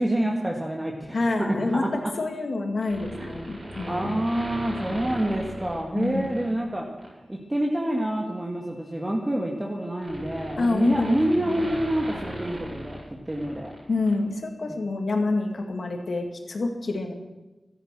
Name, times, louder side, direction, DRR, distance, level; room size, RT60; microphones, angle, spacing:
voice 1, 0.0-2.1 3.2-3.3 3.9-6.9 7.3-13.7, right 1 dB, 25° right, -1 dB, 1.9 m, -27 dB
voice 2, 1.1-1.8 2.2-4.1 5.9-6.4 10.6-11.7 13.9-17.1, left 3 dB, 75° left, 3 dB, 2.1 m, -27 dB
sound 1, 2.8-6.5 7.0-7.2 8.4-13.8 14.0-14.1, equal, 65° right, 5.8 m, -38 dB
13.5 x 9.3 x 7.6 m, 1.1 s
cardioid pair, 50°, 0 cm